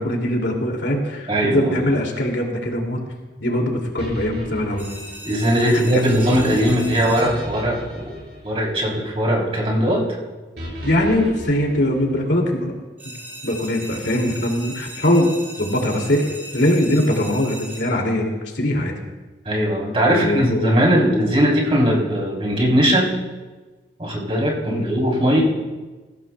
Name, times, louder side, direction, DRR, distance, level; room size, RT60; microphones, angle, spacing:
voice 1, 0.0-3.0 3.4-4.8 5.6-6.1 10.8-12.7 13.0-13.1 13.4-15.3 15.6-18.9 20.1-20.8 24.6-24.9 25.3-25.4, left 1 dB, 85° left, 1 dB, 2.5 m, -21 dB
voice 2, 1.3-1.7 5.2-8.1 8.4-10.2 19.4-23.1 24.0-25.4, equal, 35° right, -2 dB, 3.4 m, -19 dB
sound 1, 4.0-9.3 10.6-12.5, right 1 dB, 65° right, 5.1 m, -35 dB
sound 2, 4.8-7.7 13.0-18.2, right 1 dB, 10° right, 4.3 m, -38 dB
21.0 x 16.0 x 2.3 m, 1.3 s
head